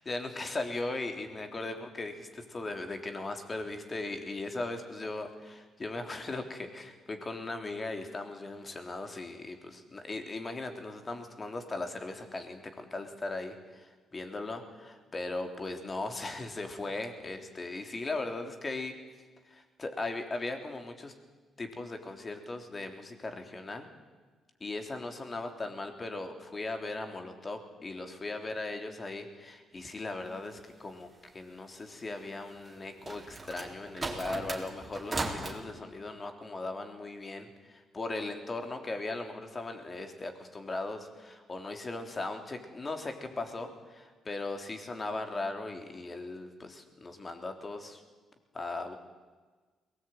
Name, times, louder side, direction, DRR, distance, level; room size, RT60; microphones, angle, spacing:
voice 1, 0.1-18.9 19.5-21.1 21.6-23.9 24.6-48.0 48.5-49.0, left 2 dB, 30° left, 6 dB, 3.5 m, -38 dB
sound 1, 32.7-35.6, right 2 dB, 25° right, 4.1 m, -37 dB
21.5 x 19.5 x 9.3 m, 1.4 s
cardioid pair, 90°, 0 cm